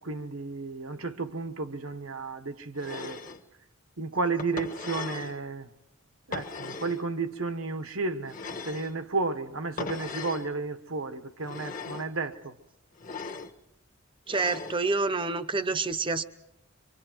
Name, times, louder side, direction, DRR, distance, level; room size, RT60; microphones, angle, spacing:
voice 1, 0.0-3.2 4.0-5.7 6.3-8.4 8.6-12.5, right 3 dB, 75° right, 1.3 m, -32 dB
sound 1, 2.8-3.4 4.4-5.4 6.3-7.0 8.3-9.0 9.8-10.5 11.4-12.1 13.0-13.5 14.3-14.8, left 4 dB, 35° left, 1.1 m, -38 dB
voice 2, 14.3-16.2, right 3 dB, 25° right, 0.8 m, -28 dB
25.0 x 24.5 x 4.6 m
head